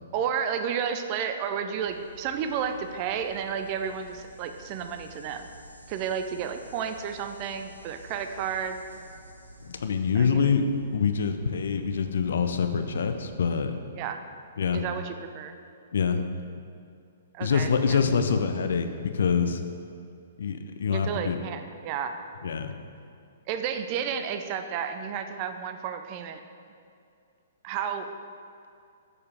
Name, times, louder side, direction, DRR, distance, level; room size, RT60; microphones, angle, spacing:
voice 1, 0.1-5.5 5.9-8.8 10.1-10.5 13.9-14.2 14.7-15.6 17.3-18.0 20.9-22.2 23.5-26.4 27.6-28.1, right 7 dB, 35° right, 7 dB, 0.5 m, -32 dB
sound 1, 1.8-13.2, right 1 dB, 85° right, 0.8 m, -50 dB
voice 2, 9.6-10.7 10.9-13.7 14.6-14.8 15.9-16.2 17.4-18.9 19.1-19.6 20.4-21.4 22.4-22.7, left 6 dB, 60° left, 8 dB, 0.5 m, -25 dB
6.7 x 6.5 x 3.6 m, 2.4 s
figure-of-eight pair, 115°, 0 cm